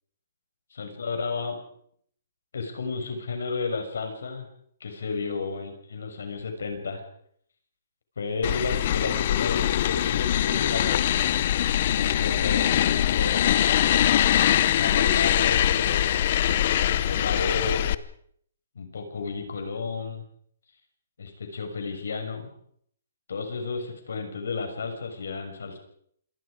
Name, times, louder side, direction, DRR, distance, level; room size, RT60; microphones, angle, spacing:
voice 1, 0.8-1.6 2.5-4.5 4.8-7.0 8.2-11.1 11.8-14.0 14.8-16.1 16.7-17.9 18.7-20.2 21.2-22.5 23.3-25.8, left 4 dB, 85° left, 5 dB, 6.3 m, -32 dB
sound 1, 8.4-17.9, left 11 dB, 40° left, 0.8 m, -23 dB
26.5 x 20.5 x 5.1 m, 0.66 s
hypercardioid pair, 170°, 0 cm